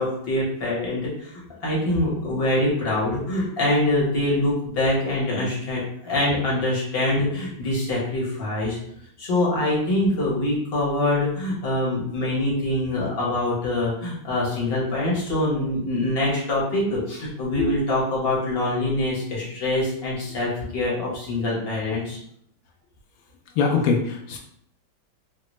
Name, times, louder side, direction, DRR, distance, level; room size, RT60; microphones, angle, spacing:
voice 1, 0.0-8.8 9.2-22.2, left 1 dB, 40° left, -5 dB, 1.0 m, -24 dB
voice 2, 23.6-24.4, left 5 dB, 90° left, 2 dB, 1.4 m, -22 dB
3.8 x 2.1 x 3.1 m, 0.70 s
omnidirectional pair, 2.2 m